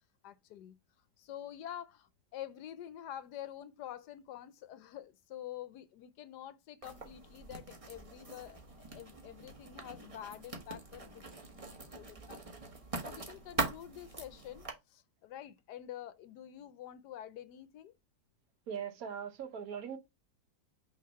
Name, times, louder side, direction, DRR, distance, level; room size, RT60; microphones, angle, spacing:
voice 1, 0.2-0.8 1.2-11.6 11.8-12.4 13.0-17.9, left 11 dB, 70° left, 1.1 m, -47 dB
Writing, 6.8-14.7, right 3 dB, 25° right, 0.9 m, -42 dB
voice 2, 18.7-20.0, right 7 dB, 60° right, 1.2 m, -40 dB
5.9 x 3.0 x 5.3 m
omnidirectional pair, 2.0 m